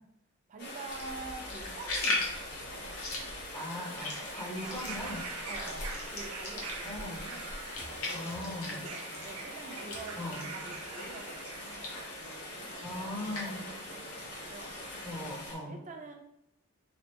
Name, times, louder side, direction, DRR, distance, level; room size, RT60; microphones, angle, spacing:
voice 1, 0.5-3.3 4.6-4.9 5.5-7.5 7.8-14.8 15.5-16.1, right 3 dB, 35° right, 3 dB, 0.5 m, -47 dB
Rain, 0.6-15.5, left 1 dB, 55° left, 1.3 m, -43 dB
sound 1, 0.9-11.2 11.5-15.4, left 2 dB, 75° left, 0.9 m, -40 dB
voice 2, 3.5-5.2 6.8-7.3 8.1-8.8 10.2-10.5 12.8-13.6 15.0-15.8, left 1 dB, 15° left, -4 dB, 0.7 m, -39 dB
sound 2, 3.5-12.1 13.0-13.1, right 5 dB, 85° right, 0.5 m, -46 dB
3.3 x 3.3 x 2.9 m, 0.80 s
head